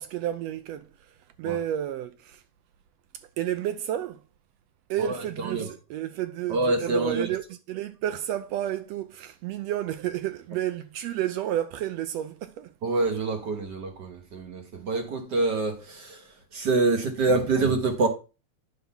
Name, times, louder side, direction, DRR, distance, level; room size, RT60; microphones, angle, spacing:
voice 1, 0.0-2.4 3.4-4.2 4.9-12.7, right 12 dB, 80° right, 1.6 m, -31 dB
voice 2, 5.0-5.7 6.5-7.3 12.8-16.2 16.5-18.1, right 3 dB, 50° right, 1.3 m, -26 dB
9.6 x 3.9 x 5.7 m
omnidirectional pair, 3.3 m